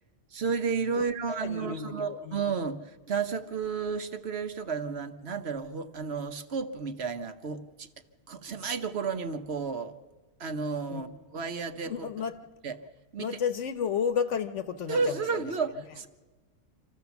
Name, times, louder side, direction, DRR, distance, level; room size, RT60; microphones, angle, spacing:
voice 1, 0.3-7.9 8.3-9.9 10.4-12.1 12.6-12.8 13.1-13.3 14.9-16.1, right 5 dB, 60° right, 8 dB, 1.2 m, -32 dB
voice 2, 0.9-2.4 10.9-11.1 11.8-12.4 13.2-15.5, left 7 dB, 75° left, 9 dB, 1.3 m, -32 dB
26.0 x 14.0 x 7.1 m, 1.3 s
omnidirectional pair, 1.3 m